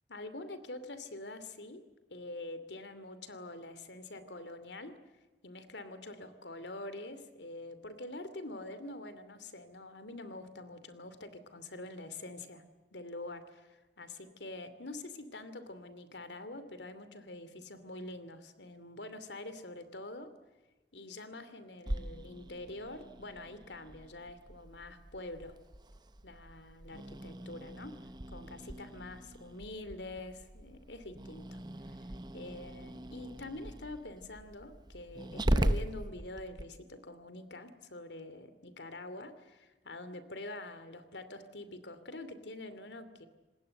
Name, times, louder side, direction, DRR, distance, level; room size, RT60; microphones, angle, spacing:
voice 1, 0.1-1.8 2.1-5.0 5.4-12.6 12.9-20.3 20.9-25.6 26.2-28.0 28.3-31.6 31.9-32.0 32.3-43.3, left 2 dB, 85° left, 12 dB, 2.7 m, -45 dB
Growling, 21.9-36.6, right 1 dB, 25° right, 0.9 m, -39 dB
27.0 x 20.0 x 7.8 m, 1.2 s
head